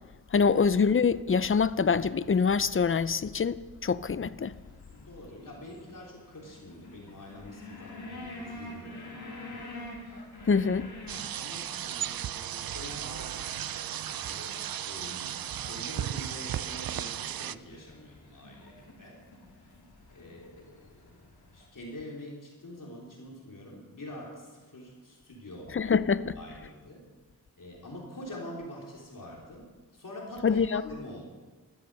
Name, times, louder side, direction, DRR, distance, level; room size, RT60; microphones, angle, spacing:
voice 1, 0.3-4.6 10.5-10.9 25.7-26.4 30.4-30.8, left 5 dB, 35° left, 0.5 m, -25 dB
sound 1, 4.5-21.7, left 1 dB, 90° left, 3.2 m, -48 dB
voice 2, 4.9-9.7 10.0-10.2 10.5-10.7 11.3-14.5 14.8-19.2 19.5-19.7 20.1-25.8 26.4-27.0 27.6-29.7 29.9-31.2, left 1 dB, 60° left, 3.7 m, -46 dB
sound 2, 11.1-17.6, right 10 dB, 70° right, 0.5 m, -35 dB
13.5 x 13.0 x 6.8 m
wide cardioid pair, 80°, 36 cm